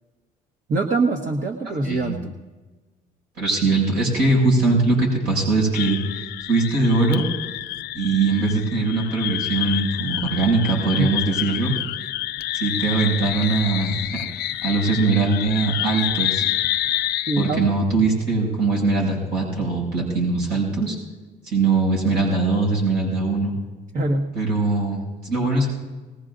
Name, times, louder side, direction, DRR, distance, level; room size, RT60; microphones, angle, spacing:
voice 1, 0.7-2.3 11.0-11.1 17.3-17.7 23.9-24.3, right 2 dB, 50° right, 3 dB, 1.4 m, -23 dB
voice 2, 1.8-2.2 3.4-6.0 6.5-7.3 7.9-11.7 12.5-14.2 14.6-16.4 17.4-21.0 21.4-23.5 24.3-25.7, right 3 dB, 80° right, -2 dB, 6.6 m, -21 dB
sound 1, 5.7-17.6, left 13 dB, 75° left, 0.7 m, -28 dB
21.5 x 19.0 x 2.6 m, 1.3 s
cardioid pair, 110°, 17 cm